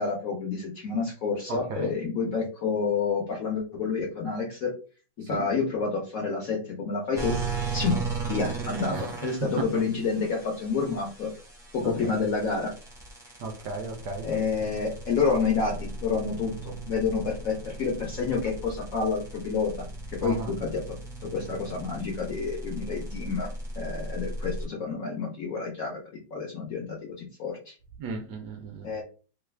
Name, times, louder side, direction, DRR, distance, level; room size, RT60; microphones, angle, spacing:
voice 1, 0.0-4.8 5.2-7.4 7.7-11.3 11.7-12.7 14.2-26.0 26.3-27.7 28.8-29.0, left 5 dB, 65° left, 0 dB, 0.8 m, -29 dB
voice 2, 1.5-2.0 5.2-5.5 7.9-8.0 8.9-9.8 11.8-12.2 13.4-14.3 20.2-20.5 28.0-29.0, right 4 dB, 70° right, 4 dB, 1.0 m, -35 dB
sound 1, 7.1-24.6, right 3 dB, 5° right, 0.5 m, -37 dB
3.2 x 2.3 x 3.2 m, 0.36 s
omnidirectional pair, 2.1 m